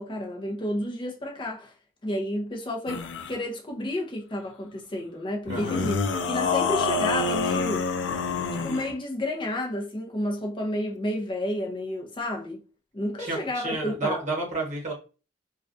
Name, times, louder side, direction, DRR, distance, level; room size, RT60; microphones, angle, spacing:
voice 1, 0.0-1.7 2.0-6.0 6.3-7.9 8.6-12.6 12.9-14.2, left 1 dB, 30° left, 0.5 m, -31 dB
sound 1, 2.9-3.4 5.5-8.9, left 4 dB, 85° left, 0.4 m, -27 dB
voice 2, 5.5-5.9 13.2-14.9, right 3 dB, 45° right, 1.0 m, -31 dB
2.3 x 2.2 x 2.5 m
head